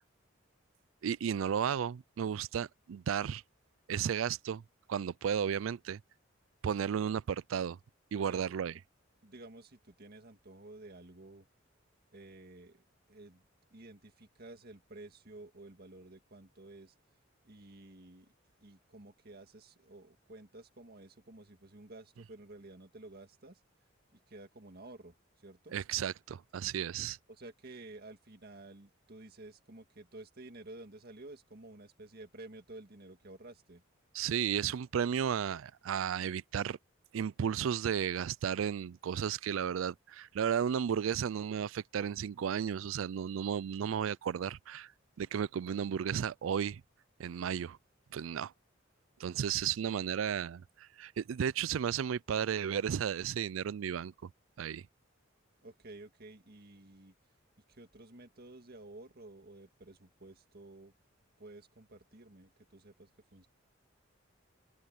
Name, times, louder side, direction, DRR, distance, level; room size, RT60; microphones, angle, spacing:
voice 1, 1.0-3.4 3.9-4.6 4.9-6.0 6.6-7.8 8.1-8.7 25.7-27.2 34.1-36.8 37.1-44.9 45.2-46.8 47.2-47.8 48.1-48.5 49.2-54.3 54.6-54.8, right 8 dB, 85° right, 0.4 m, -33 dB
voice 2, 9.2-11.5 12.1-13.4 13.7-16.9 17.4-18.3 18.6-23.6 24.1-25.2 25.4-25.8 27.3-33.8 55.6-57.1 57.7-60.9 61.4-63.5, right 2 dB, 55° right, 1.8 m, -52 dB
head